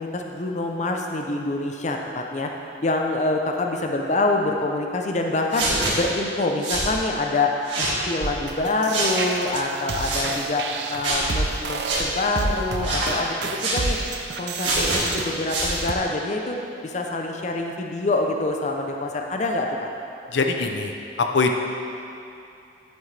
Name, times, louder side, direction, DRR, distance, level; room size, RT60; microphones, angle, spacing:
voice 1, 0.0-2.5 2.8-14.0 14.4-19.9, left 2 dB, 40° left, 2 dB, 0.6 m, -26 dB
sound 1, 5.5-5.9 6.6-6.9 7.6-8.0 8.9-9.1 9.9-10.3 11.0-11.3 11.8-12.0 12.8-13.1 13.6-13.8 14.6-15.0 15.5-15.8, right 2 dB, 90° right, 1.9 m, -25 dB
sound 2, 8.2-15.9, right 3 dB, 65° right, 0.6 m, -30 dB
voice 2, 20.3-20.9 21.3-21.5, left 3 dB, 80° left, 3 dB, 0.6 m, -22 dB
10.0 x 7.6 x 3.3 m, 2.7 s
head